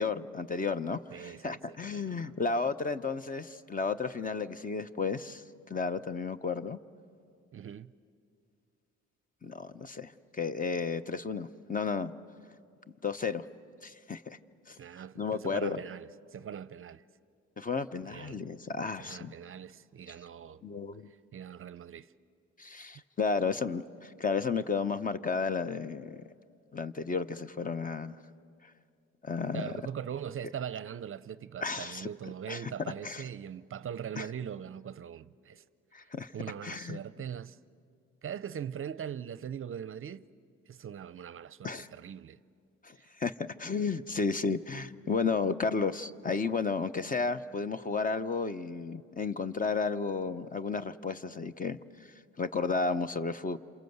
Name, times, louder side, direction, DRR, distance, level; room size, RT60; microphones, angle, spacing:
voice 1, 0.0-6.8 9.4-12.1 13.0-13.4 13.8-14.4 14.7-14.8 15.2-15.8 17.6-19.3 20.6-21.1 22.6-26.2 26.7-28.2 29.2-29.7 31.6-32.1 32.5-32.7 33.0-33.2 34.2-34.3 35.9-36.3 36.6-37.0 41.6-41.9 42.8-51.8 52.4-53.6, left 4 dB, 25° left, 0.8 m, -33 dB
voice 2, 1.1-2.3 7.5-7.9 14.8-17.0 18.0-18.4 19.0-20.6 21.1-22.1 29.5-35.6 36.0-37.6 38.2-40.3 40.7-42.4 43.0-43.1, right 8 dB, 45° right, 0.6 m, -41 dB
27.5 x 27.0 x 8.0 m
cardioid pair, 90°, 30 cm